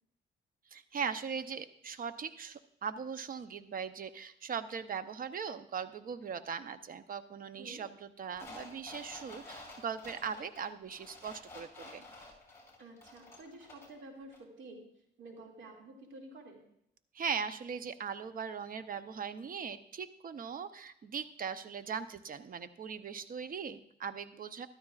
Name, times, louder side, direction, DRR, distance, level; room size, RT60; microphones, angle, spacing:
voice 1, 0.7-12.0 17.1-24.7, right 6 dB, 45° right, 12 dB, 0.7 m, -39 dB
sound 1, 8.4-14.0 14.3-14.4, left 2 dB, 10° left, 5.2 m, -51 dB
voice 2, 12.8-14.8 15.2-16.6, right 2 dB, 70° right, 1 dB, 2.4 m, -50 dB
13.5 x 12.5 x 2.4 m, 0.73 s
cardioid pair, 90°, 20 cm